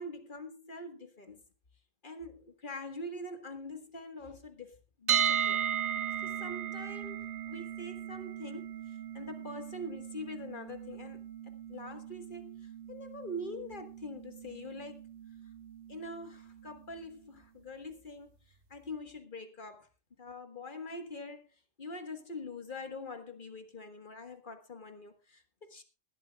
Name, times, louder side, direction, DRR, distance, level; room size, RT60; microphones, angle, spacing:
voice 1, 0.0-1.4 2.0-5.6 6.2-15.1 15.9-19.9 20.2-25.8, left 1 dB, 40° left, 1.6 m, -44 dB
sound 1, 5.1-17.0, right 8 dB, 65° right, 1.4 m, -37 dB
20.5 x 12.0 x 2.3 m
omnidirectional pair, 1.3 m